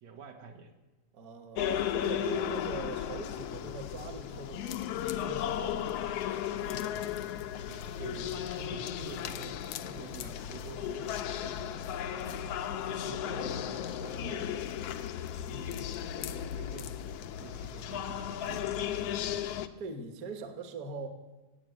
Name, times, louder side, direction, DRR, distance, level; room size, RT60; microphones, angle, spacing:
voice 1, 0.0-0.8 7.7-14.5 16.1-18.8, right 6 dB, 70° right, 3 dB, 2.2 m, -48 dB
voice 2, 1.1-6.1 15.5-16.0 19.4-21.1, right 3 dB, 40° right, 5 dB, 1.3 m, -42 dB
sound 1, 1.6-19.7, left 10 dB, 75° left, 1.5 m, -35 dB
sound 2, 4.6-17.2, left 13 dB, 90° left, 2.1 m, -50 dB
16.5 x 8.2 x 9.2 m, 1.1 s
omnidirectional pair, 3.4 m